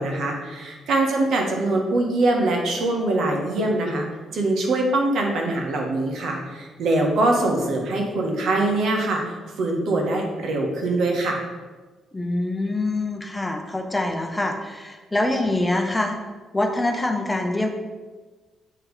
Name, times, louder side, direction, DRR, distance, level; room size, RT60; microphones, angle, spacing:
voice 1, 0.0-4.0 4.3-11.4, right 2 dB, 70° right, 1 dB, 1.4 m, -23 dB
voice 2, 12.1-16.2 16.5-17.7, left 2 dB, 10° left, 4 dB, 0.8 m, -25 dB
7.5 x 3.2 x 4.9 m, 1.3 s
cardioid pair, 90°, 0 cm